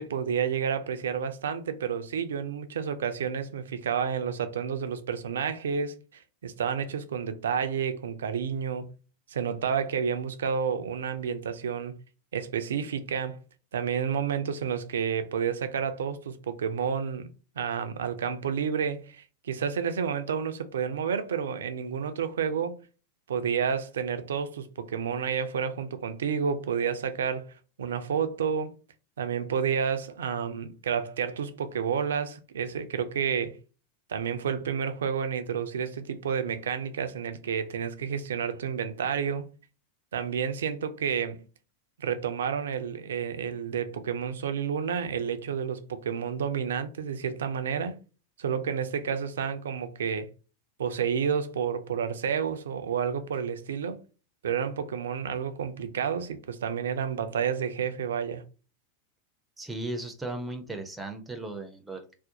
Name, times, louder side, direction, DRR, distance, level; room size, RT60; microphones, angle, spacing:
voice 1, 0.0-8.9 9.3-12.0 12.3-13.4 13.7-17.3 17.6-22.8 23.3-27.5 27.8-28.7 29.2-33.6 34.1-39.5 40.1-41.4 42.0-48.0 48.4-50.3 50.8-54.0 54.4-58.4, right 7 dB, 65° right, 0.3 m, -30 dB
voice 2, 59.6-62.1, right 2 dB, 5° right, 0.5 m, -36 dB
2.4 x 2.0 x 2.7 m
figure-of-eight pair, 90°, 0 cm